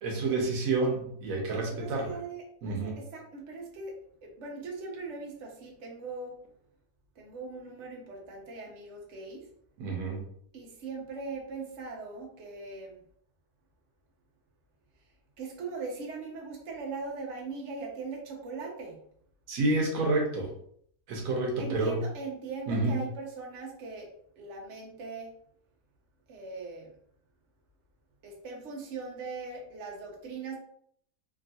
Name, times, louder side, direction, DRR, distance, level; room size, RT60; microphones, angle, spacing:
voice 1, 0.0-2.2 2.6-3.0 9.8-10.2 19.5-20.5 21.1-22.0 22.7-23.0, right 2 dB, 80° right, 0 dB, 1.2 m, -29 dB
voice 2, 1.4-4.0 4.2-6.3 7.2-9.5 10.5-13.0 15.4-19.0 21.6-24.1 24.4-25.3 26.3-26.9 28.2-30.6, right 4 dB, 65° right, -1 dB, 1.0 m, -40 dB
3.5 x 2.3 x 2.6 m, 0.67 s
omnidirectional pair, 1.4 m